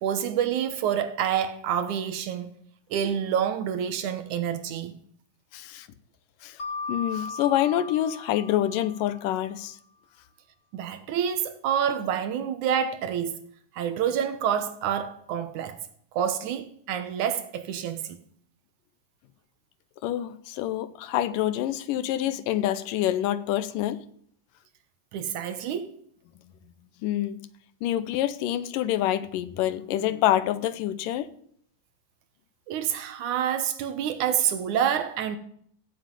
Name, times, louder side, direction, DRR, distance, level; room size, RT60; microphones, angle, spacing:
voice 1, 0.0-2.5 2.9-5.0 10.7-13.5 13.7-15.8 16.1-18.2 25.1-25.9 32.7-35.4, right 9 dB, 70° right, 2.3 m, -28 dB
voice 2, 5.5-5.9 6.4-6.6 6.9-9.8 20.0-24.1 27.0-27.4 27.8-31.3, left 12 dB, 80° left, 2.4 m, -26 dB
Mallet percussion, 6.6-9.4, left 3 dB, 40° left, 1.1 m, -37 dB
15.5 x 7.7 x 9.0 m
omnidirectional pair, 3.9 m